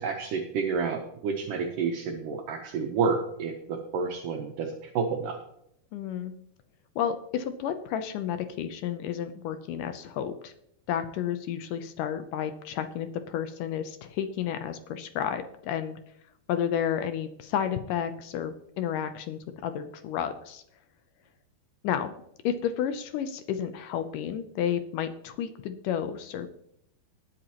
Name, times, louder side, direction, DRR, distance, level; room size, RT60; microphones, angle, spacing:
voice 1, 0.0-5.4, right 5 dB, 70° right, 2 dB, 2.3 m, -30 dB
voice 2, 5.9-6.3 7.0-10.5 10.9-16.0 16.5-20.6 21.8-22.1 22.4-26.5, left 9 dB, 75° left, 9 dB, 2.0 m, -31 dB
20.0 x 7.7 x 3.0 m, 0.73 s
omnidirectional pair, 4.4 m